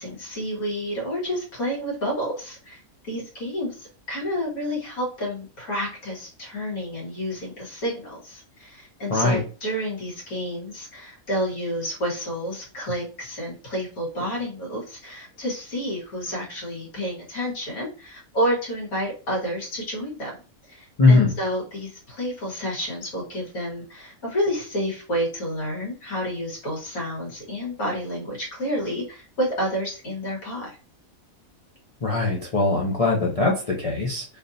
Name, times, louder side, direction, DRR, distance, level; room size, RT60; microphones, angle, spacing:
voice 1, 0.0-20.3 20.7-30.7, equal, 80° left, -3 dB, 2.0 m, -30 dB
voice 2, 9.1-9.4 21.0-21.3 32.0-34.2, left 3 dB, 55° left, -3 dB, 0.4 m, -20 dB
3.5 x 2.6 x 2.6 m, 0.36 s
omnidirectional pair, 1.5 m